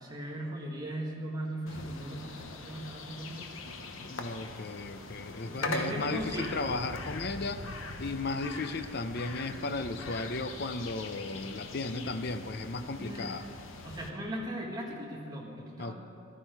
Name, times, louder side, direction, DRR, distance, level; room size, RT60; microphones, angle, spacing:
voice 1, 0.0-3.6 5.5-6.6 13.0-13.3 13.8-15.9, right 1 dB, 20° right, -2 dB, 1.7 m, -38 dB
sound 1, 1.7-14.1, left 3 dB, 70° left, 1.0 m, -41 dB
voice 2, 4.1-7.6 8.0-13.5 15.8-15.9, left 3 dB, 50° left, 10 dB, 0.6 m, -35 dB
14.0 x 12.5 x 4.7 m, 2.7 s
head